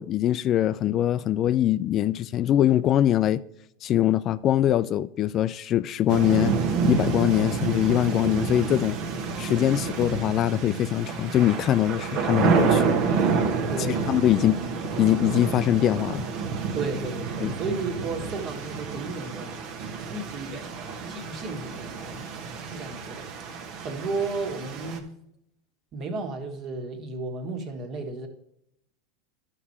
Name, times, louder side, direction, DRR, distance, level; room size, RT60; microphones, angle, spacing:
voice 1, 0.0-3.4 3.8-6.6 6.9-9.0 9.4-12.9 13.8-14.6 15.0-16.2 17.4-17.5, left 12 dB, 40° left, 15 dB, 0.3 m, -23 dB
sound 1, 6.1-25.0, right 5 dB, 60° right, 1.2 m, -29 dB
voice 2, 13.7-14.4 16.7-19.5 20.1-22.3 22.7-23.2 23.8-25.1 25.9-28.3, right 3 dB, 45° right, 5 dB, 1.7 m, -33 dB
11.0 x 4.9 x 4.3 m, 0.77 s
hypercardioid pair, 105°, 0 cm